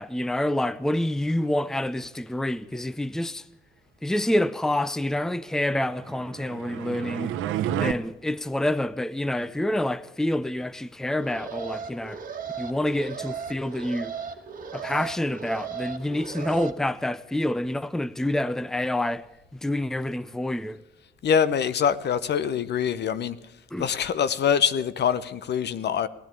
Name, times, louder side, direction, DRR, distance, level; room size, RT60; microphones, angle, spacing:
voice 1, 0.0-3.5 4.0-7.3 7.7-12.2 12.6-14.1 14.7-19.3 19.5-20.8 23.7-23.9, left 1 dB, ahead, 0.6 m, -27 dB
sound 1, 6.0-7.9, right 11 dB, 90° right, 0.8 m, -30 dB
Alarm, 11.1-16.7, right 6 dB, 45° right, 1.6 m, -36 dB
voice 2, 21.2-23.4 23.8-26.1, left 7 dB, 60° left, 0.9 m, -24 dB
17.5 x 11.0 x 7.0 m
cardioid pair, 90°, 20 cm